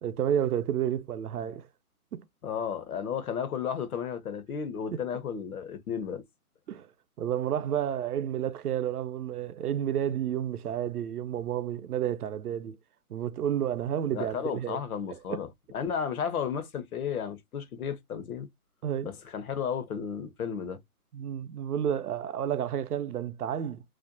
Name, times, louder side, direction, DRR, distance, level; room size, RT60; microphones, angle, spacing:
voice 1, 0.0-1.7 2.1-2.2 4.9-5.0 6.7-6.9 7.2-12.8 13.1-14.8 15.3-15.4 18.8-19.1 21.1-23.8, right 10 dB, 75° right, 0.6 m, -30 dB
voice 2, 2.4-6.2 14.1-15.5 15.7-18.5 19.0-20.8, left 7 dB, 70° left, 0.8 m, -33 dB
2.5 x 2.1 x 2.5 m
hypercardioid pair, 145°, 45 cm